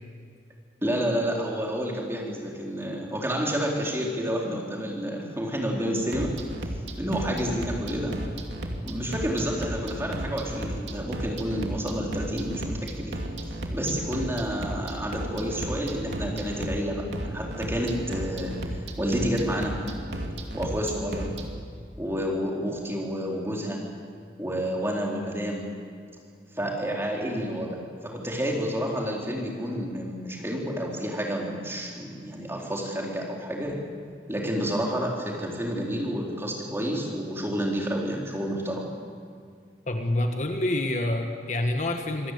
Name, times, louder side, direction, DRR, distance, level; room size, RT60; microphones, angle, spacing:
voice 1, 0.8-6.3 7.0-8.2 8.8-13.2 13.7-19.8 20.5-21.3 22.0-23.8 24.4-25.7 26.5-33.8 34.3-38.8, equal, 15° right, -1 dB, 4.0 m, -29 dB
sound 1, 6.0-21.5, right 1 dB, 75° right, 2.7 m, -34 dB
voice 2, 39.9-42.3, left 1 dB, 40° left, 4 dB, 1.6 m, -27 dB
26.0 x 17.5 x 8.3 m, 2.2 s
head